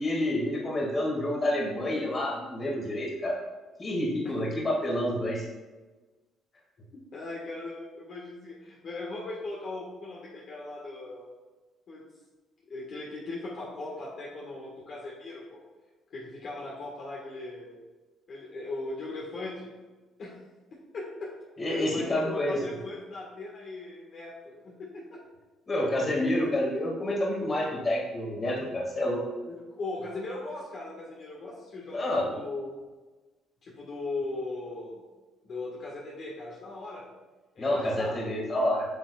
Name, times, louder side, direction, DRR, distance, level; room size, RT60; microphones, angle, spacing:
voice 1, 0.0-3.3 3.8-5.4 21.6-22.6 25.7-29.2 31.9-32.3 37.6-38.9, left 1 dB, 30° left, -2 dB, 2.0 m, -28 dB
voice 2, 7.1-11.4 11.9-12.0 12.7-15.6 16.1-17.7 18.3-19.7 20.2-20.4 20.7-21.3 21.6-25.2 26.2-26.4 29.4-32.8 33.6-35.0 35.4-37.0 37.5-38.3, left 2 dB, 50° left, -4 dB, 1.5 m, -39 dB
9.0 x 6.1 x 2.3 m, 1.2 s
cardioid pair, 115°, 0 cm